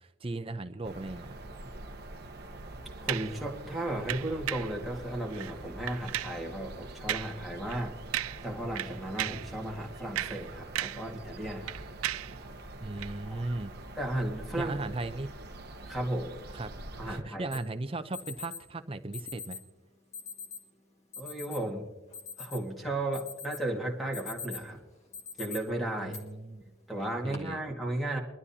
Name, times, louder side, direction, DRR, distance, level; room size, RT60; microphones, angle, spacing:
voice 1, 0.0-1.3 12.8-13.7 14.6-15.3 16.5-16.7 17.1-19.6 26.0-26.6 27.2-27.6, right 2 dB, 25° right, 10 dB, 0.6 m, -37 dB
sound 1, 0.8-17.2, right 2 dB, 50° right, 0.9 m, -45 dB
voice 2, 3.0-8.0 8.4-11.8 13.3-13.4 14.0-14.8 15.9-16.3 17.0-17.5 21.2-21.9 22.4-24.8 25.4-26.2 26.9-28.2, right 1 dB, ahead, -1 dB, 1.9 m, -34 dB
sound 2, 3.1-3.4 4.1-4.8 5.3-5.5 5.9-6.4 7.1-7.4 7.7-7.8 8.1-8.5 8.8-9.5 10.0-11.1 11.4-12.4 13.0-13.1, right 13 dB, 85° right, 0.4 m, -35 dB
Alarm, 17.5-17.6 18.1-18.6 19.1-19.6 20.1-20.6 21.1-21.6 22.0-22.8 23.1-23.6 24.0-24.7 25.1-25.6 26.1-26.2 27.0-27.4, left 5 dB, 30° left, 1.5 m, -41 dB
23.0 x 12.5 x 2.8 m, 1.1 s
head